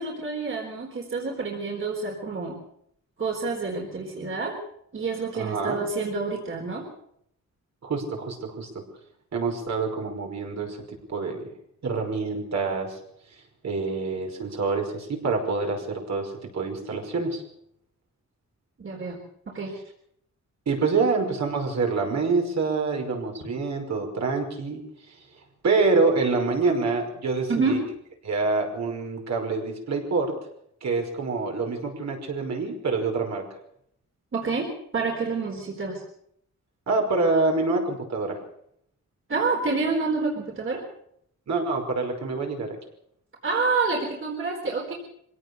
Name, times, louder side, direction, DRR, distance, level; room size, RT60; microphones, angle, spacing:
voice 1, 0.0-2.6 3.2-4.5 4.9-6.8 18.8-19.2 19.5-19.7 27.5-27.8 34.3-34.7 34.9-36.0 39.3-40.8 43.4-44.9, right 4 dB, 45° right, 0 dB, 4.1 m, -28 dB
voice 2, 5.3-5.8 7.8-8.7 9.3-10.8 11.1-11.5 11.8-13.0 13.6-17.4 20.7-24.8 25.1-25.2 25.6-27.8 28.2-30.3 30.8-33.4 36.9-38.4 41.5-42.8, right 4 dB, 65° right, 2 dB, 5.6 m, -26 dB
24.5 x 17.5 x 6.8 m, 0.70 s
wide cardioid pair, 165°, 30 cm